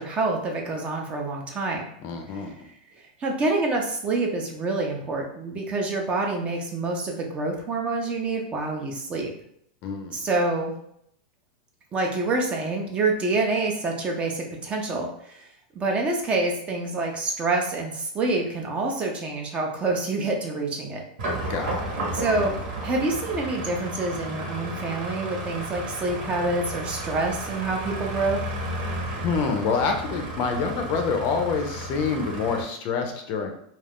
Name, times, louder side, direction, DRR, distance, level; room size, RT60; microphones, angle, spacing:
voice 1, 0.0-1.9 2.6-2.7 3.2-9.3 10.1-10.7 11.9-15.5 15.7-21.0 22.1-22.5 22.8-28.4, right 2 dB, 25° right, 1 dB, 0.5 m, -27 dB
voice 2, 2.0-2.7 9.8-10.2 21.5-21.9 29.1-33.5, left 5 dB, 45° left, 4 dB, 0.5 m, -27 dB
sound 1, 21.2-32.6, right 1 dB, 60° right, 1.0 m, -33 dB
2.4 x 2.3 x 3.5 m, 0.71 s
supercardioid pair, 135°, 5 cm